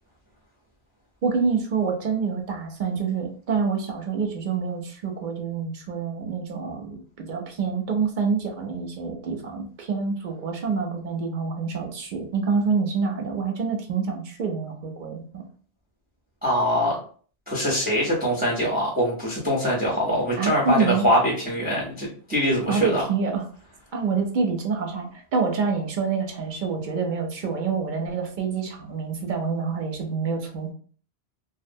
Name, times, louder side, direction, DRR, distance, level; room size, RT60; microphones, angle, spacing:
voice 1, 1.2-15.4 20.4-21.0 22.7-23.4 23.9-30.7, right 5 dB, 60° right, 3 dB, 0.6 m, -27 dB
voice 2, 16.4-17.0 17.5-23.1, equal, 10° right, -3 dB, 0.5 m, -23 dB
2.4 x 2.1 x 2.6 m, 0.44 s
omnidirectional pair, 1.1 m